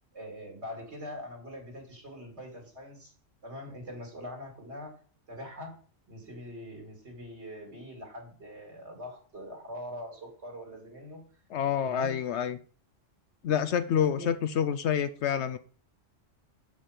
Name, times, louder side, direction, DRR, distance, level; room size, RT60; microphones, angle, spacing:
voice 1, 0.1-3.1 3.4-5.0 5.3-5.8 6.1-11.2 11.8-12.2 13.9-14.4, left 1 dB, 60° right, 2 dB, 2.5 m, -43 dB
voice 2, 11.5-12.6 13.4-15.6, left 8 dB, 70° left, 11 dB, 0.8 m, -28 dB
7.4 x 5.3 x 4.9 m, 0.41 s
omnidirectional pair, 1.3 m